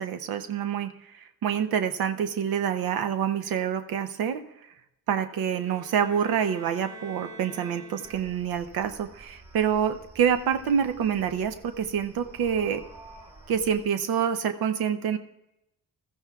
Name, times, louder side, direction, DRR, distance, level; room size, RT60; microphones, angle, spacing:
voice 1, 0.0-4.7 5.1-12.8 13.5-15.2, right 8 dB, 85° right, 9 dB, 0.7 m, -27 dB
sound 1, 5.4-8.7, right 2 dB, 20° left, 0.9 m, -47 dB
sound 2, 8.0-13.9, right 2 dB, 20° right, 4.3 m, -50 dB
21.0 x 14.5 x 2.3 m, 0.88 s
cardioid pair, 140°, 35 cm